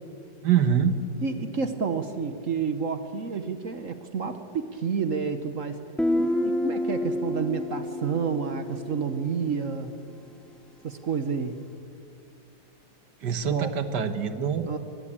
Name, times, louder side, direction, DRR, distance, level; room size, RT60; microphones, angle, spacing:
voice 1, 0.4-1.0 13.2-14.7, right 8 dB, 70° right, 11 dB, 1.8 m, -24 dB
voice 2, 1.2-5.8 6.2-9.9 10.8-11.6 13.5-13.7 14.7-14.8, right 5 dB, 50° right, 9 dB, 1.3 m, -30 dB
Guitar, 6.0-9.6, left 1 dB, ahead, 0.3 m, -29 dB
24.5 x 19.0 x 8.7 m, 2.4 s
omnidirectional pair, 1.9 m